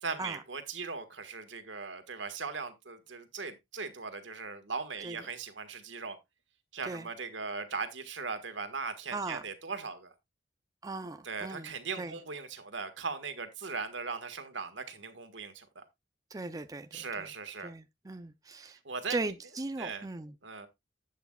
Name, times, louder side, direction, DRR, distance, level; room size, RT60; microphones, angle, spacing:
voice 1, 0.0-6.2 6.7-10.1 11.2-15.8 16.9-17.7 18.8-19.2 19.8-20.0 20.4-20.7, right 4 dB, 90° right, 1.6 m, -39 dB
voice 2, 9.1-9.4 10.8-12.2 16.3-17.3 17.6-18.8 19.1-20.4, right 2 dB, 20° right, 0.5 m, -38 dB
11.5 x 8.1 x 2.3 m
head